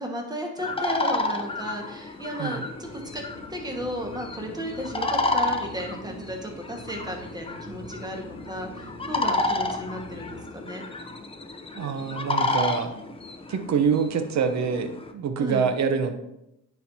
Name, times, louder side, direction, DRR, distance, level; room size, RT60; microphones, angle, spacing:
voice 1, 0.0-3.2 3.5-10.8 15.4-15.6, equal, 15° right, 1 dB, 1.5 m, -34 dB
sound 1, 0.6-15.1, left 2 dB, 20° left, 0.6 m, -31 dB
sound 2, 2.7-10.4, equal, 85° right, 2.6 m, -46 dB
voice 2, 11.7-12.9 13.5-16.2, right 6 dB, 65° right, 8 dB, 0.8 m, -25 dB
9.8 x 4.5 x 2.7 m, 0.86 s
cardioid pair, 90°, 30 cm